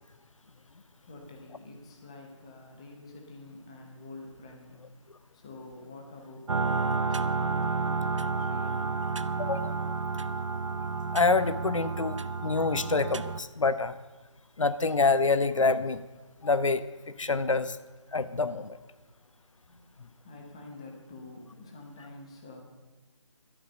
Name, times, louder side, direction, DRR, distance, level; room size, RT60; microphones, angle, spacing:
voice 1, 1.0-4.8 5.3-9.0 19.7-19.9 20.2-22.6, left 2 dB, 10° left, 1 dB, 0.9 m, -47 dB
sound 1, 6.5-13.4, right 4 dB, 75° right, 0.7 m, -30 dB
voice 2, 9.4-9.7 11.1-14.0 14.6-16.0 16.4-16.8 17.2-17.8 18.1-18.8, left 4 dB, 80° left, 14 dB, 0.9 m, -26 dB
12.5 x 11.5 x 6.3 m, 1.2 s
figure-of-eight pair, 175°, 16 cm